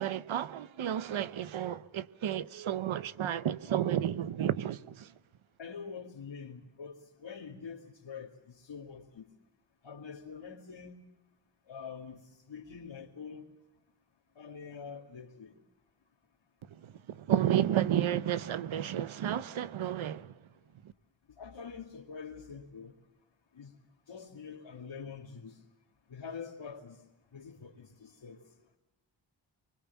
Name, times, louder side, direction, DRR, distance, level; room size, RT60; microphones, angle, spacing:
voice 1, 0.0-5.1 16.7-20.4 20.8-20.9, right 10 dB, 85° right, 0.9 m, -32 dB
voice 2, 5.6-9.3 9.8-11.0 11.7-12.2 12.5-13.5 14.4-15.5 21.4-22.9 23.5-23.7 24.1-25.6 26.1-27.0 27.3-28.4, left 6 dB, 75° left, 2.4 m, -45 dB
24.0 x 23.5 x 7.2 m
cardioid pair, 55°, 47 cm